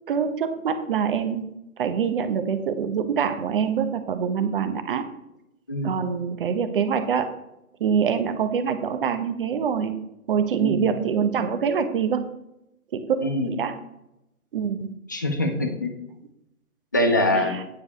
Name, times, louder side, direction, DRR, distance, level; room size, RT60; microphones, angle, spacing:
voice 1, 0.1-1.5 1.8-5.1 5.8-7.3 7.8-10.0 10.3-12.3 12.9-13.1 13.4-13.8 14.5-14.9 17.3-17.6, right 7 dB, 40° right, 8 dB, 0.9 m, -25 dB
voice 2, 10.6-11.0 13.2-13.5 15.1-15.9 16.9-17.5, left 1 dB, 15° left, 6 dB, 0.4 m, -24 dB
9.6 x 4.8 x 6.7 m, 0.84 s
hypercardioid pair, 145°, 42 cm